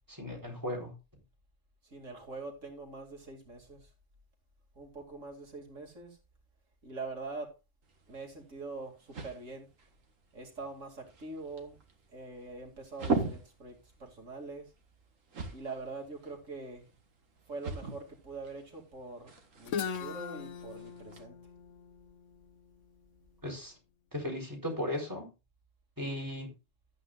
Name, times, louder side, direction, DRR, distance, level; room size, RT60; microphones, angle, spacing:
voice 1, 0.1-0.9 23.4-23.7 24.1-25.3 26.0-26.5, left 1 dB, 15° right, 4.1 m, -36 dB
voice 2, 1.8-3.9 4.7-6.2 6.8-7.5 8.1-9.7 10.3-11.8 12.1-14.7 15.5-16.8 17.5-21.4, right 3 dB, 75° right, 3.0 m, -44 dB
sound 1, 7.8-21.2, right 4 dB, 90° right, 2.0 m, -41 dB
Guitar, 19.7-23.4, left 7 dB, 75° left, 1.1 m, -40 dB
14.0 x 9.1 x 2.5 m
omnidirectional pair, 1.3 m